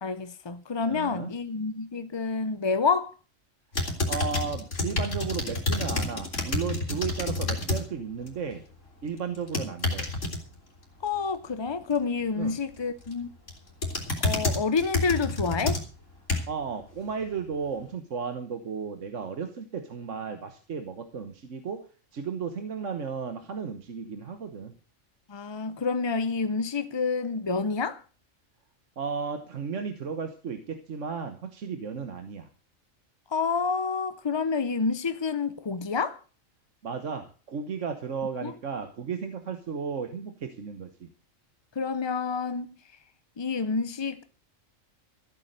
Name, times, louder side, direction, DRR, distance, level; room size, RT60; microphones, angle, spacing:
voice 1, 0.0-3.1 11.0-13.3 14.2-15.8 25.3-28.0 33.3-36.2 38.4-38.5 41.8-42.7 43.4-44.2, left 4 dB, 40° left, 0.4 m, -28 dB
voice 2, 0.9-1.3 4.1-8.6 9.0-10.1 12.4-12.6 16.5-21.9 22.1-24.7 29.0-32.5 36.8-41.1, right 6 dB, 65° right, 1.5 m, -34 dB
sound 1, 3.7-7.8 8.2-8.6 9.4-10.4 12.8-13.1 13.5-16.7 17.2-17.3, left 2 dB, 65° left, 3.4 m, -29 dB
14.5 x 8.5 x 6.6 m
omnidirectional pair, 1.4 m